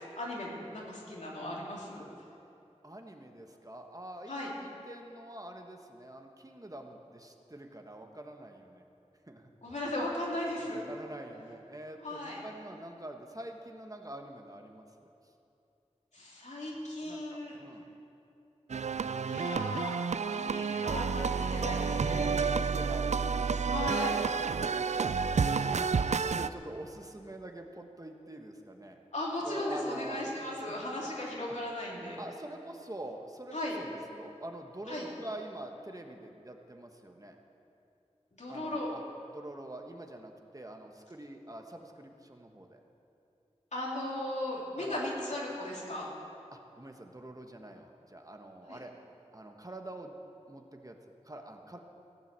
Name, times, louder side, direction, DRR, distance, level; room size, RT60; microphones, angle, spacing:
voice 1, 0.1-2.0 4.3-4.5 9.6-10.8 12.0-12.4 16.1-17.6 19.2-22.3 23.7-24.2 29.1-32.2 33.5-33.8 34.9-35.1 38.3-38.9 43.7-46.1 48.7-48.8, left 1 dB, 85° left, -4 dB, 2.9 m, -36 dB
voice 2, 2.8-8.8 9.3-9.5 10.9-15.1 17.0-17.9 22.5-23.6 24.6-25.2 25.5-29.0 29.4-31.1 32.2-37.4 38.5-39.0 39.3-42.8 44.8-45.1 46.5-48.9 49.3-50.1 50.5-51.0 51.2-51.8, right 1 dB, 30° right, 3 dB, 1.3 m, -46 dB
sound 1, 18.7-26.5, right 5 dB, 80° right, 0.4 m, -30 dB
16.0 x 8.3 x 7.5 m, 2.7 s
wide cardioid pair, 40°, 12 cm